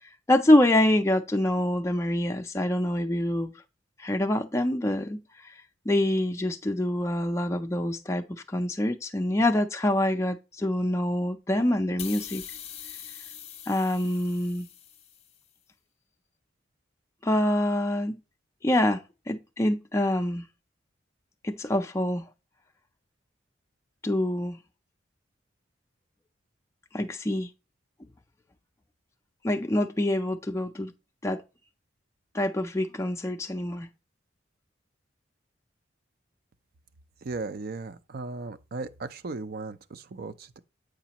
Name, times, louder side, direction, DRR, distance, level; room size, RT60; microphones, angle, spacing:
voice 1, 0.3-3.5 4.0-5.5 5.9-12.4 13.7-14.7 17.2-18.2 18.6-20.4 21.4-22.2 24.0-24.6 26.9-27.5 29.4-30.9 31.2-31.4 32.3-33.9, left 1 dB, 15° left, 0.4 m, -25 dB
sound 1, 12.0-15.4, left 9 dB, 30° left, 0.8 m, -43 dB
voice 2, 37.2-40.6, right 3 dB, 50° right, 0.5 m, -36 dB
8.2 x 5.0 x 2.9 m
head